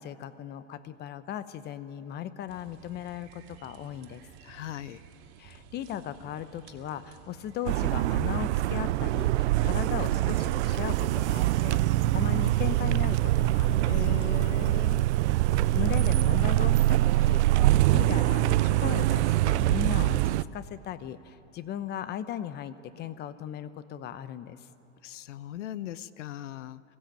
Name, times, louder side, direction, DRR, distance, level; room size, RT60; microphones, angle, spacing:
voice 1, 0.0-4.2 5.4-14.3 15.7-24.6, left 10 dB, 30° left, 14 dB, 0.8 m, -37 dB
sound 1, 2.5-7.7, right 7 dB, 55° right, 2.4 m, -53 dB
voice 2, 4.4-5.0 13.9-15.1 25.0-26.8, left 12 dB, 85° left, 18 dB, 0.8 m, -38 dB
sound 2, 7.7-20.4, right 16 dB, 70° right, 0.5 m, -24 dB
22.0 x 16.0 x 9.0 m, 2.8 s
supercardioid pair, 130°, 35 cm